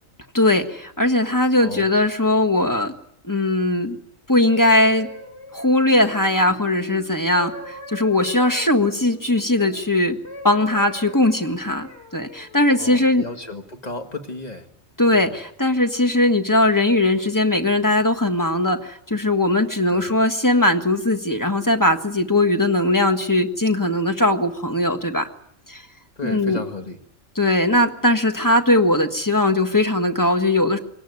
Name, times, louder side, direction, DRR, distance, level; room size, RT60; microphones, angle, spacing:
voice 1, 0.3-2.9 3.3-4.0 4.3-5.1 5.5-10.2 10.4-13.2 15.0-25.3 25.7-25.8 26.2-26.6 27.3-30.8, left 1 dB, 15° left, 6 dB, 1.6 m, -19 dB
voice 2, 1.6-1.9 12.8-14.7 15.1-15.3 19.9-20.1 26.2-27.0, left 2 dB, 30° left, 5 dB, 2.0 m, -33 dB
sound 1, 4.3-9.8 10.2-13.1 13.8-14.0, left 1 dB, 55° left, 4.3 m, -41 dB
22.5 x 18.0 x 9.7 m, 0.75 s
omnidirectional pair, 1.4 m